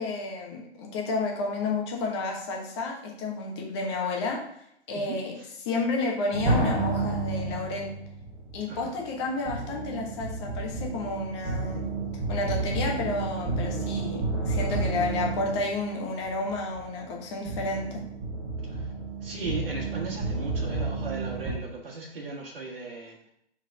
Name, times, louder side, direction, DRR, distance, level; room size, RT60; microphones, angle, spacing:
voice 1, 0.0-4.4 4.9-7.9 8.5-11.9 12.3-18.0, left 3 dB, 25° left, 0 dB, 1.3 m, -31 dB
voice 2, 4.9-5.5 8.7-8.9 18.7-18.8 19.2-23.3, right 3 dB, 55° right, -4 dB, 1.7 m, -37 dB
sound 1, 6.3-21.5, right 3 dB, 5° right, 1.9 m, -31 dB
5.0 x 4.5 x 4.9 m, 0.75 s
figure-of-eight pair, 130°, 34 cm